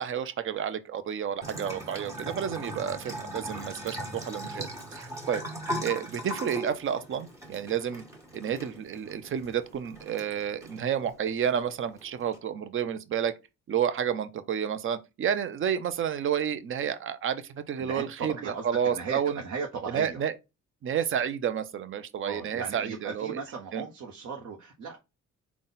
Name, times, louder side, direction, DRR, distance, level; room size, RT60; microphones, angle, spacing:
voice 1, 0.0-5.4 5.8-8.0 8.3-13.3 13.7-18.3 18.6-19.4 19.9-20.3 20.8-23.4 23.7-23.8, right 8 dB, 45° right, 0.6 m, -30 dB
Bathtub (filling or washing) / Trickle dribble, 1.4-12.4, equal, 10° right, 1.6 m, -39 dB
voice 2, 17.8-20.2 22.2-25.0, right 5 dB, 60° right, 0.9 m, -37 dB
3.9 x 2.3 x 3.9 m
cardioid pair, 90°, 30 cm